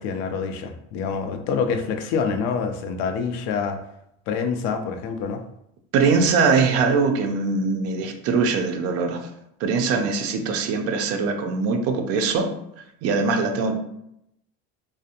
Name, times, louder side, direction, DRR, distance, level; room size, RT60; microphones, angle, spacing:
voice 1, 0.0-3.8 4.3-5.4, left 5 dB, 80° left, 7 dB, 0.5 m, -26 dB
voice 2, 5.9-9.3 9.6-12.5 13.0-13.7, right 4 dB, 50° right, 5 dB, 0.4 m, -22 dB
2.4 x 2.0 x 2.7 m, 0.78 s
cardioid pair, 140°, 31 cm